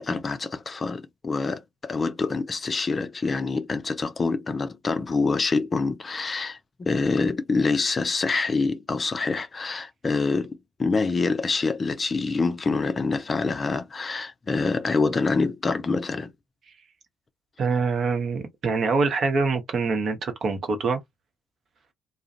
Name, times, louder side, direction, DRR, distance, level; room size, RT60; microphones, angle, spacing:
voice 1, 0.0-16.3, left 4 dB, 30° left, 0.5 m, -26 dB
voice 2, 17.6-21.0, right 4 dB, 45° right, 0.9 m, -25 dB
2.4 x 2.0 x 2.7 m
figure-of-eight pair, 50°, 0 cm